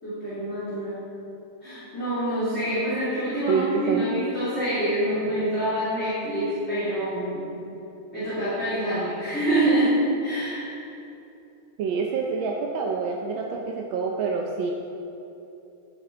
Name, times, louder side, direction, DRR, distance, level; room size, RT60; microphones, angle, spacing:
voice 1, 0.0-1.0 1.6-7.5 8.1-10.0 10.2-10.6, right 1 dB, 30° left, -13 dB, 3.3 m, -26 dB
voice 2, 3.5-4.0 11.8-14.7, right 5 dB, 70° right, 0 dB, 1.5 m, -27 dB
15.5 x 7.8 x 3.8 m, 2.8 s
omnidirectional pair, 2.3 m